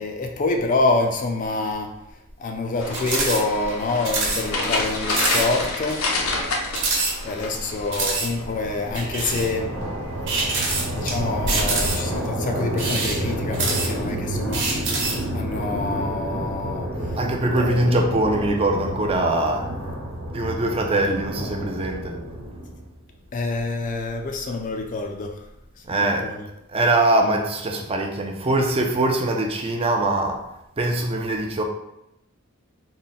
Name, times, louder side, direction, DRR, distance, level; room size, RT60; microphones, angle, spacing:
voice 1, 0.0-2.0 2.4-6.2 7.2-9.7 10.9-15.1 15.3-17.1 17.6-17.9 23.3-25.5 25.9-26.5, left 3 dB, 40° left, 0.4 m, -27 dB
sound 1, 2.8-12.2, left 2 dB, 80° left, 0.7 m, -30 dB
sound 2, 2.9-3.4 3.7-3.8 4.0-4.4 4.8-4.9 5.1-5.5 5.9-6.0 6.7-7.5 7.9-8.3 8.9-9.5 10.3-11.1 11.5-12.2 12.7-14.1 14.5-15.2, right 3 dB, 60° right, 1.1 m, -25 dB
sound 3, 6.7-23.0, equal, 85° right, 1.1 m, -30 dB
voice 2, 17.1-19.7 20.3-22.1 25.9-26.3 26.7-30.4 30.8-31.6, right 2 dB, 25° right, 0.4 m, -22 dB
3.8 x 2.1 x 4.0 m
head